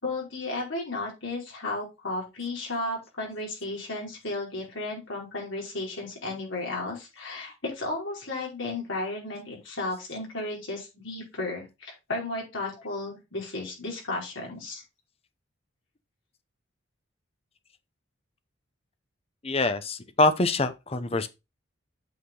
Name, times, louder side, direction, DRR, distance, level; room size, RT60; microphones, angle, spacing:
voice 1, 0.0-14.8, left 2 dB, 70° left, 4.9 m, -34 dB
voice 2, 19.4-21.3, left 2 dB, 30° left, 0.8 m, -25 dB
8.5 x 5.9 x 3.9 m
head